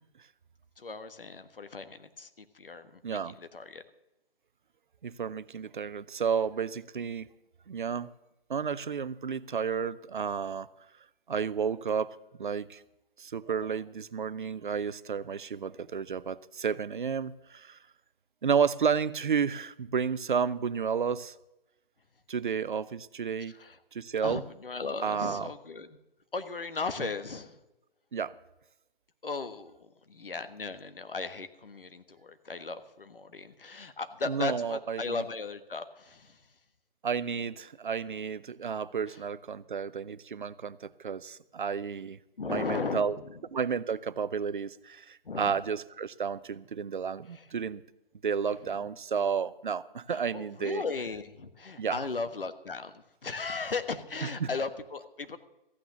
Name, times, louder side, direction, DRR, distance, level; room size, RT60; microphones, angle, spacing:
voice 1, 0.8-3.8 23.6-23.8 24.2-25.9 26.3-27.6 29.2-36.4 42.4-43.3 45.2-45.6 47.3-47.5 50.1-52.9 53.2-55.4, left 4 dB, 65° left, 10 dB, 1.4 m, -36 dB
voice 2, 3.0-3.3 5.0-7.3 7.7-8.1 8.5-10.7 11.3-12.8 13.2-17.8 18.4-21.3 22.3-23.5 23.9-24.4 25.0-25.5 27.0-27.1 28.1-28.3 34.3-35.2 37.0-42.2 42.5-43.2 43.5-47.8 48.2-50.8 51.8-52.1 54.2-54.5, right 6 dB, 55° right, 18 dB, 0.7 m, -31 dB
14.5 x 9.2 x 6.8 m, 0.93 s
figure-of-eight pair, 140°, 30 cm